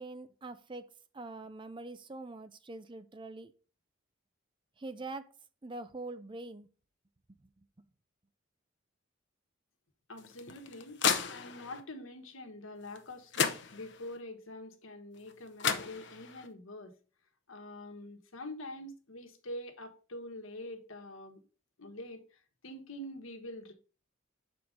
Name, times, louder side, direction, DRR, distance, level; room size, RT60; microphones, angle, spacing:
voice 1, 0.0-3.5 4.8-5.3 5.6-6.7, right 2 dB, 25° right, 0.5 m, -44 dB
voice 2, 10.1-11.0 11.3-16.9 17.5-21.4 21.8-23.7, left 1 dB, 80° left, 1.2 m, -45 dB
sound 1, 10.2-11.8 13.0-13.1 13.3-14.2 15.3-15.4 15.6-16.5, left 6 dB, 55° left, 0.7 m, -33 dB
6.3 x 4.4 x 5.2 m
head